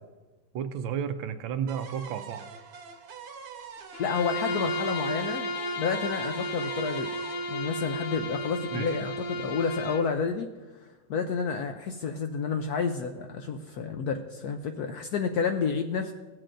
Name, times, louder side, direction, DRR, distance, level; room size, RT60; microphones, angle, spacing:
voice 1, 0.5-2.4 8.7-9.0, right 8 dB, 85° right, 9 dB, 1.4 m, -32 dB
sound 1, 1.7-8.6, right 6 dB, 60° right, 1.2 m, -45 dB
Bowed string instrument, 3.9-10.1, equal, 50° left, 1.3 m, -33 dB
voice 2, 4.0-5.5 5.8-7.1 7.5-10.5 11.1-16.1, left 5 dB, 75° left, 6 dB, 0.9 m, -30 dB
16.5 x 7.6 x 2.5 m, 1.2 s
omnidirectional pair, 2.1 m